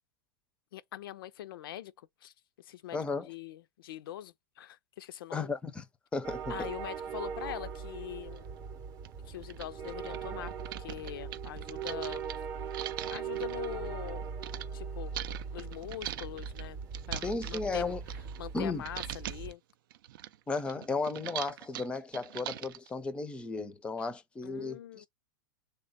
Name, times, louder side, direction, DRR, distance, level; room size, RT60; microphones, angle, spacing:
voice 1, 0.7-1.9 2.2-5.5 6.5-8.6 9.3-10.5 10.8-12.2 13.1-14.2 14.7-15.2 15.5-16.8 17.1-17.9 18.4-19.6 24.4-25.1, left 12 dB, 75° left, 0.4 m, -43 dB
voice 2, 2.9-3.3 5.3-5.9 6.1-6.7 17.2-18.0 18.5-18.8 20.5-25.1, left 3 dB, 10° left, 0.4 m, -34 dB
sound 1, 6.2-19.5, right 6 dB, 30° right, 0.7 m, -40 dB
sound 2, 8.4-8.5 9.0-9.1 9.4-14.7 15.1-18.6 18.8-19.5 19.9-22.9, right 12 dB, 70° right, 0.4 m, -42 dB
3.3 x 2.1 x 3.9 m
hypercardioid pair, 120°, 12 cm